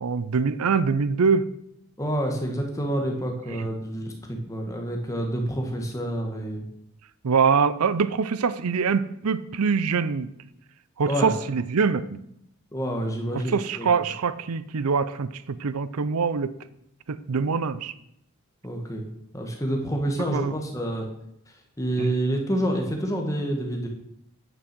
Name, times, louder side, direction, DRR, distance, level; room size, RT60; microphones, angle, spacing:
voice 1, 0.0-1.5 3.6-3.7 7.2-10.3 11.0-12.2 13.3-16.5 17.1-17.9 20.3-20.5 22.0-22.1, right 5 dB, 90° right, 15 dB, 0.5 m, -24 dB
voice 2, 2.0-6.6 11.1-11.3 12.7-13.9 18.6-19.1 19.3-21.1 21.8-23.9, right 1 dB, 15° left, 2 dB, 1.6 m, -28 dB
10.0 x 6.3 x 6.1 m, 0.77 s
head